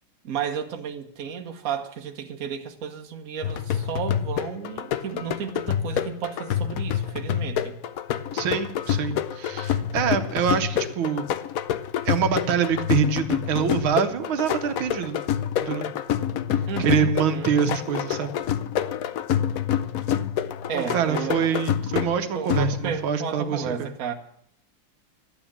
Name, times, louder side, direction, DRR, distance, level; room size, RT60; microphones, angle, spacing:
voice 1, 0.2-7.8 16.7-17.5 20.7-21.5 22.3-24.1, right 7 dB, 50° right, 1.4 m, -33 dB
sound 1, 3.4-23.1, left 9 dB, 75° left, 0.8 m, -27 dB
voice 2, 8.3-11.3 12.1-15.2 15.6-15.9 16.8-18.3 20.7-23.8, right 7 dB, 85° right, 1.8 m, -25 dB
12.5 x 9.1 x 7.3 m
omnidirectional pair, 2.2 m